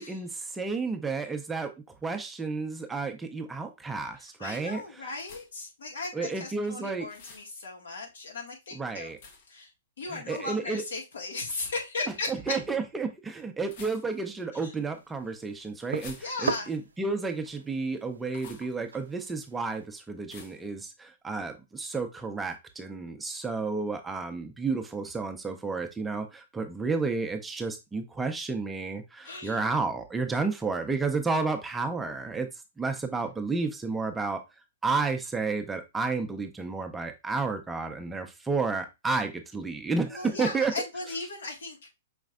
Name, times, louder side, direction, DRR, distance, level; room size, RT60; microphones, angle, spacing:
voice 1, 0.0-1.7 2.0-5.1 6.1-7.1 8.7-9.2 10.1-10.8 12.3-32.5 32.8-34.4 34.8-40.7, right 4 dB, 10° right, 0.6 m, -31 dB
voice 2, 4.4-9.1 9.5-9.7 10.0-12.5 14.6-14.7 16.2-16.7 29.2-29.6 40.1-41.9, left 3 dB, 80° left, 1.6 m, -36 dB
sound 1, 5.2-5.7 7.1-7.5 9.2-9.6 11.6-11.8 13.6-14.4 15.9-16.7 18.3-18.7 20.3-20.7, left 5 dB, 55° left, 0.9 m, -49 dB
sound 2, 14.8-19.9, right 5 dB, 90° right, 0.4 m, -40 dB
5.1 x 3.1 x 2.4 m
hypercardioid pair, 125°, 0 cm